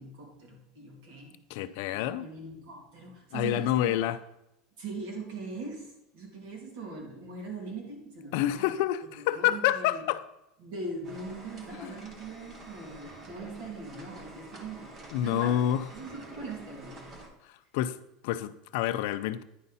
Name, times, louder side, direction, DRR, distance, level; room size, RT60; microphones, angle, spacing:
voice 1, 0.0-1.3 1.9-4.0 4.8-8.7 9.1-10.0 10.6-14.9 15.2-15.6 15.9-17.1, right 3 dB, 60° right, -1 dB, 2.7 m, -41 dB
voice 2, 1.5-2.2 3.3-4.2 8.3-10.2 11.8-11.9 15.1-15.8 17.7-17.9 18.2-19.4, left 12 dB, 60° left, 12 dB, 0.4 m, -28 dB
sound 1, 11.0-17.3, right 2 dB, 25° right, 1.0 m, -48 dB
9.8 x 5.4 x 4.1 m, 0.87 s
cardioid pair, 175°, 0 cm